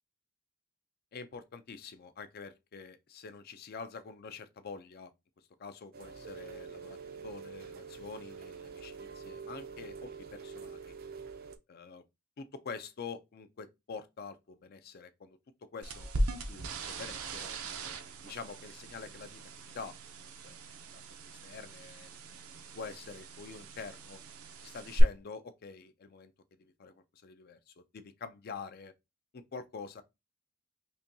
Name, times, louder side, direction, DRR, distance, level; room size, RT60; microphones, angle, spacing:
voice 1, 1.1-5.1 5.6-10.9 11.7-12.0 12.4-15.4 15.7-16.1 16.5-17.6 18.2-19.4 19.7-20.6 20.9-21.0 21.4-22.1 22.5-24.2 24.6-26.3 26.6-26.9 27.2-28.9 29.3-30.0, left 5 dB, 45° left, 0.4 m, -46 dB
Rain, 5.9-11.6, right 5 dB, 45° right, 0.4 m, -46 dB
sound 1, 15.8-25.0, right 2 dB, 85° right, 0.6 m, -39 dB
5.4 x 2.2 x 2.6 m
head